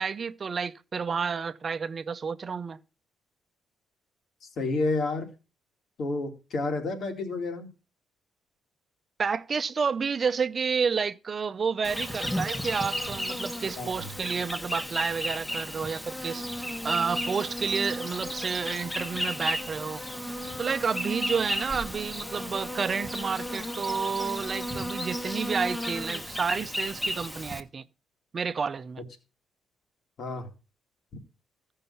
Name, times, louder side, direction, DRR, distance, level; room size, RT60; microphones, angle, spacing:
voice 1, 0.0-2.8 9.2-16.4 16.8-20.0 20.6-27.9 28.3-29.0, right 5 dB, 40° right, 0.7 m, -30 dB
voice 2, 4.6-5.3 6.0-7.7 13.8-14.1 30.2-30.5, left 3 dB, 65° left, 2.6 m, -30 dB
Insect, 11.8-27.6, equal, 10° left, 1.3 m, -34 dB
14.5 x 5.6 x 5.5 m
cardioid pair, 90°, 0 cm